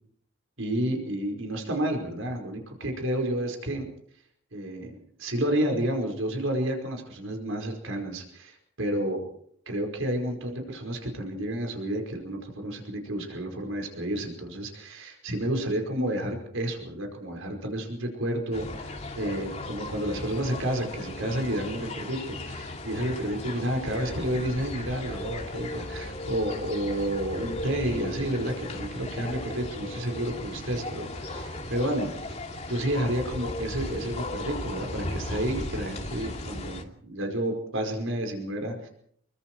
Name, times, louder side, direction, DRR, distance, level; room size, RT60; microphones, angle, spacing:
voice 1, 0.6-3.9 4.5-9.3 9.6-32.1 32.7-38.9, right 1 dB, 70° right, 3 dB, 5.1 m, -30 dB
sound 1, 18.5-36.8, left 2 dB, 30° left, 2.8 m, -36 dB
27.5 x 23.5 x 4.7 m, 0.64 s
head